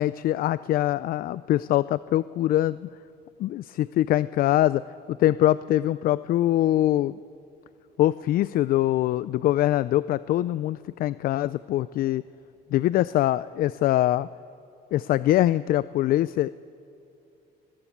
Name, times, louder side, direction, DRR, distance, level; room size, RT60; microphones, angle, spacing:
voice 1, 0.0-2.9 3.4-4.8 5.1-7.2 8.0-12.2 12.7-14.3 14.9-16.5, left 14 dB, 60° left, 17 dB, 0.4 m, -23 dB
22.5 x 15.0 x 8.6 m, 2.8 s
cardioid pair, 110°, 17 cm